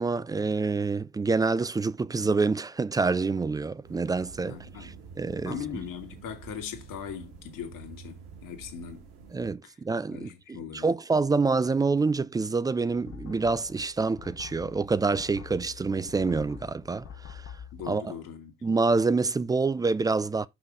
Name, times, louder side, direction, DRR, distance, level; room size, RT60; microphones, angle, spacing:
voice 1, 0.0-5.6 9.3-17.4 17.9-18.1 18.6-20.5, right 4 dB, 10° right, 0.3 m, -27 dB
sound 1, 3.8-9.5, right 6 dB, 65° right, 2.0 m, -48 dB
voice 2, 4.4-5.0 5.4-9.1 9.6-9.8 10.1-10.9 17.7-18.5, left 7 dB, 60° left, 2.1 m, -40 dB
sound 2, 13.1-17.9, left 8 dB, 45° left, 0.9 m, -46 dB
5.8 x 5.6 x 4.8 m
hypercardioid pair, 60°, 37 cm